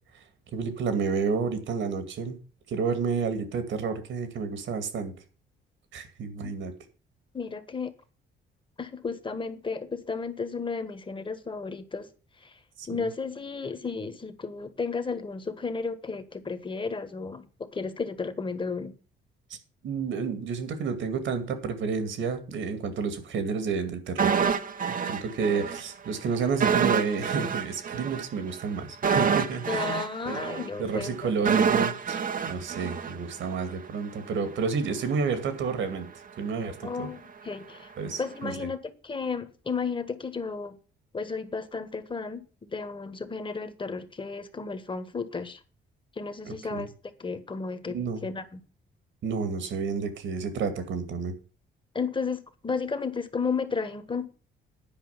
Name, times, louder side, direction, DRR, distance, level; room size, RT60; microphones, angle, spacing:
voice 1, 0.5-2.4 2.7-5.1 5.9-6.7 12.8-13.0 19.8-24.4 25.0-30.0 30.3-30.5 30.8-32.2 32.5-36.1 36.4-37.1 38.0-38.7 46.5-46.9 47.9-48.2 49.2-51.4, right 5 dB, 75° right, 2.3 m, -30 dB
voice 2, 7.3-7.9 8.8-12.1 12.4-12.6 12.9-18.9 29.7-31.3 36.8-37.9 38.2-40.8 41.1-45.6 46.1-46.9 47.2-48.6 51.9-54.3, left 4 dB, 25° left, 1.5 m, -33 dB
sound 1, 24.2-25.8 26.1-26.2 26.6-33.7 34.0-34.1, right 6 dB, 45° right, 1.0 m, -27 dB
10.5 x 5.2 x 8.3 m
cardioid pair, 90°, 20 cm